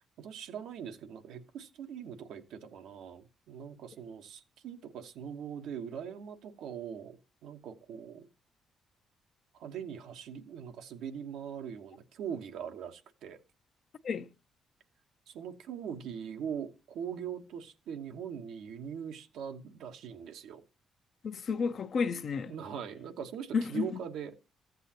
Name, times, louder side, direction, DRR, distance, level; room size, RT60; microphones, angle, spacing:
voice 1, 0.2-8.3 9.5-13.4 15.3-20.6 22.5-24.3, right 8 dB, 85° right, 1.0 m, -41 dB
voice 2, 21.2-22.5 23.5-24.0, left 5 dB, 55° left, 0.6 m, -32 dB
14.5 x 8.0 x 2.8 m
cardioid pair, 90°, 0 cm